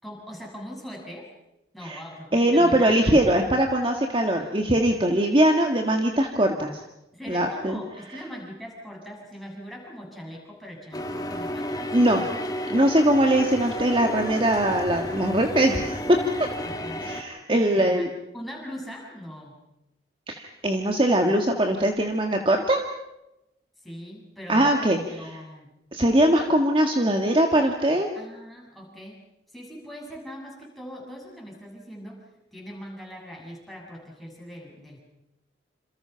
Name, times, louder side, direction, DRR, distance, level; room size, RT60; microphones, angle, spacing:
voice 1, 0.0-1.3 1.7-3.4 4.4-5.0 7.1-12.0 16.6-17.0 17.8-18.1 18.3-19.6 23.8-25.7 28.2-29.2 29.5-35.0, equal, ahead, -2 dB, 7.4 m, -41 dB
voice 2, 2.3-6.8 7.3-7.8 11.9-12.2 12.7-16.0 17.0-18.1 20.3-22.8 24.5-25.0 25.9-28.1, right 1 dB, 30° right, 3 dB, 1.8 m, -21 dB
sound 1, 10.9-17.2, equal, 20° left, 2.4 m, -32 dB
28.0 x 27.5 x 5.8 m, 0.90 s
head